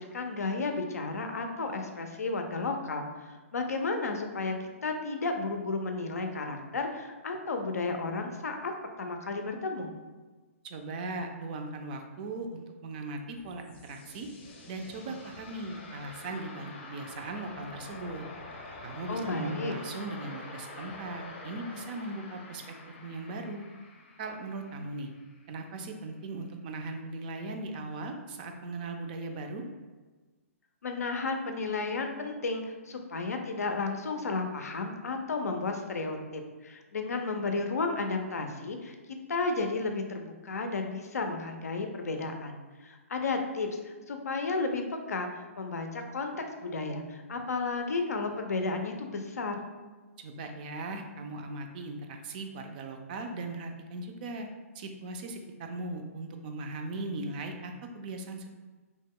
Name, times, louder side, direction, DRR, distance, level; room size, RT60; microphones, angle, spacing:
voice 1, 0.0-4.5 4.8-8.7 9.0-9.9 19.1-19.8 30.8-38.9 39.3-44.8 45.1-49.6, left 3 dB, 85° left, 5 dB, 0.5 m, -33 dB
voice 2, 10.6-14.3 14.7-18.2 18.8-22.8 23.0-23.7 24.2-25.1 25.5-29.6 50.2-54.5 54.7-58.6, right 2 dB, 35° right, 4 dB, 0.3 m, -38 dB
sound 1, 13.3-26.0, left 3 dB, 40° left, 0.6 m, -47 dB
2.9 x 2.1 x 3.5 m, 1.3 s
hypercardioid pair, 145°, 8 cm